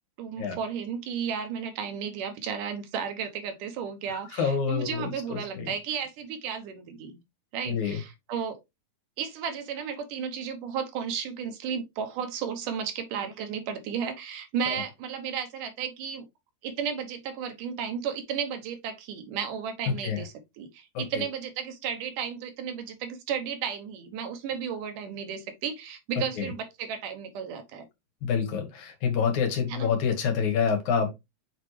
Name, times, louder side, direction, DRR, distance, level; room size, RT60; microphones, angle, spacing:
voice 1, 0.2-7.2 7.5-8.6 9.2-16.3 16.6-27.9 29.7-29.9, right 7 dB, 80° right, 2.6 m, -33 dB
voice 2, 4.4-5.7 7.7-8.0 14.7-14.8 20.0-20.2 20.9-21.2 26.4-26.5 28.2-31.1, left 6 dB, 70° left, 2.8 m, -27 dB
7.2 x 4.4 x 3.3 m
omnidirectional pair, 3.7 m